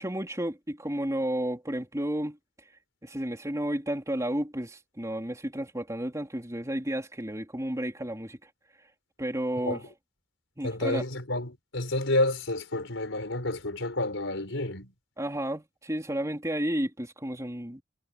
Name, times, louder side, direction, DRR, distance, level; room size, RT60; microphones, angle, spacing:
voice 1, 0.0-2.4 3.0-8.4 9.2-9.8 10.6-11.0 15.2-17.8, right 1 dB, 15° right, 3.7 m, -32 dB
voice 2, 10.6-14.9, left 2 dB, 80° left, 4.6 m, -30 dB
head